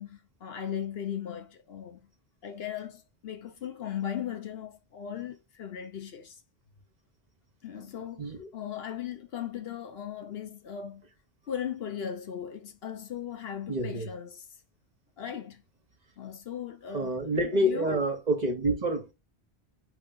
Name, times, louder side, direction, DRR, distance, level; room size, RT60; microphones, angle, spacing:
voice 1, 0.0-2.1 2.4-6.4 7.6-11.0 11.5-14.5 15.2-15.6 16.2-18.0, left 9 dB, 70° left, 1.0 m, -38 dB
voice 2, 8.2-8.5 13.7-14.1 16.9-19.1, right 1 dB, 45° right, 1.0 m, -28 dB
4.5 x 3.1 x 3.8 m
omnidirectional pair, 1.1 m